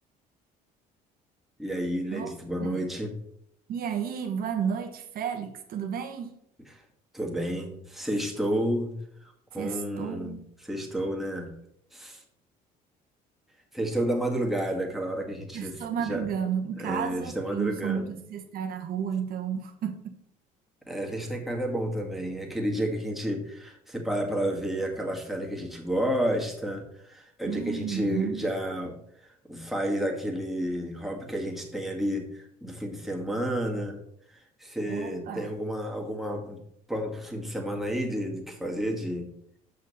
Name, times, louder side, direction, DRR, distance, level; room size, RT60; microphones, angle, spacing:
voice 1, 1.6-3.1 6.7-6.8 7.1-8.9 9.2-11.5 11.9-12.2 13.7-16.3 16.8-18.1 20.9-34.0 34.3-36.6 36.9-39.3, equal, ahead, 1.9 m, -31 dB
voice 2, 3.7-6.3 9.5-10.4 15.5-20.2 27.5-28.5 34.9-35.5, right 7 dB, 60° right, 1.2 m, -32 dB
6.8 x 5.6 x 4.1 m
supercardioid pair, 80°, 17 cm